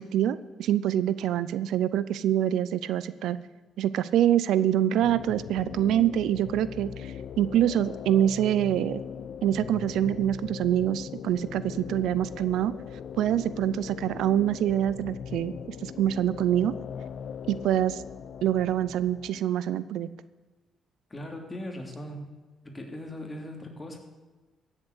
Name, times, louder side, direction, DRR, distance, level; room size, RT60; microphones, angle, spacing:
voice 1, 0.0-3.4 3.8-9.0 9.4-12.7 13.2-15.5 15.8-16.7 17.5-18.0 18.4-20.1, right 11 dB, 80° right, 16 dB, 0.5 m, -25 dB
sound 1, 5.0-19.4, left 8 dB, 65° left, 0.7 m, -40 dB
voice 2, 21.1-22.3 22.6-24.0, left 1 dB, 20° left, 3 dB, 2.9 m, -39 dB
15.5 x 7.3 x 8.2 m, 1.3 s
cardioid pair, 90°, 0 cm